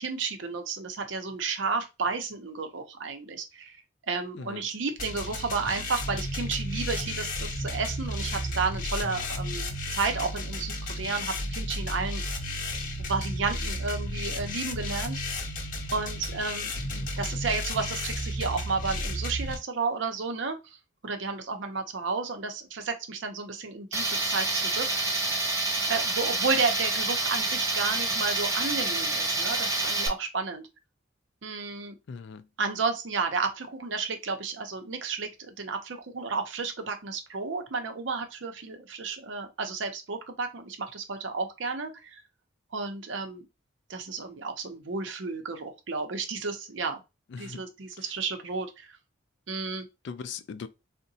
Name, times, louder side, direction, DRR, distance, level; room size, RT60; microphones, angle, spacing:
voice 1, 0.0-3.8 4.1-12.2 13.1-15.2 15.9-16.7 17.2-20.8 21.0-24.9 25.9-30.7 31.4-32.0 32.6-42.2 42.7-43.4 43.9-47.0 47.4-49.0 49.5-49.9, right 4 dB, 65° right, 0.6 m, -32 dB
sound 1, 5.0-19.6, left 1 dB, 45° left, 0.8 m, -33 dB
Tools, 23.9-30.1, right 2 dB, 15° right, 0.5 m, -28 dB
voice 2, 32.1-32.4 47.3-47.6 50.0-50.7, left 5 dB, 60° left, 0.3 m, -39 dB
3.7 x 2.1 x 2.7 m
head